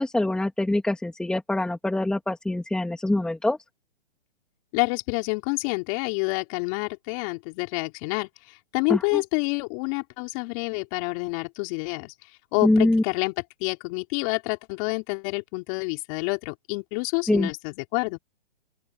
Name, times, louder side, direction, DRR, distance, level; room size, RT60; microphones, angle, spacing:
voice 1, 0.0-3.6 8.9-9.2 12.6-13.0 17.3-17.5, left 1 dB, 5° left, 2.5 m, -24 dB
voice 2, 4.7-12.1 12.5-13.3 13.6-18.2, left 31 dB, 35° left, 4.3 m, -28 dB
open air
hypercardioid pair, 145°, 30 cm